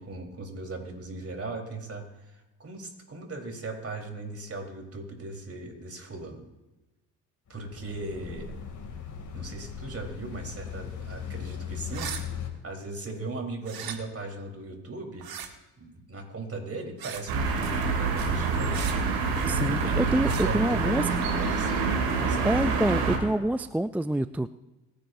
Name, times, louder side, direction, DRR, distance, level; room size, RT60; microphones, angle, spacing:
voice 1, 0.0-6.5 7.5-8.5 9.3-12.1 12.6-15.3 15.8-19.0 19.7-22.5, right 2 dB, 35° right, 2 dB, 4.0 m, -38 dB
sound 1, 7.5-12.5, left 7 dB, 45° left, 2.8 m, -38 dB
sound 2, 11.9-12.2 13.6-14.0 15.2-15.5 17.0-17.3 18.7-19.0 20.2-20.5, right 8 dB, 55° right, 1.8 m, -37 dB
sound 3, 17.3-23.2, right 4 dB, 85° right, 3.0 m, -26 dB
voice 2, 19.4-21.1 22.4-24.5, right 1 dB, 5° right, 13 dB, 0.3 m, -26 dB
25.5 x 10.5 x 2.7 m, 1.1 s
supercardioid pair, 65°, 42 cm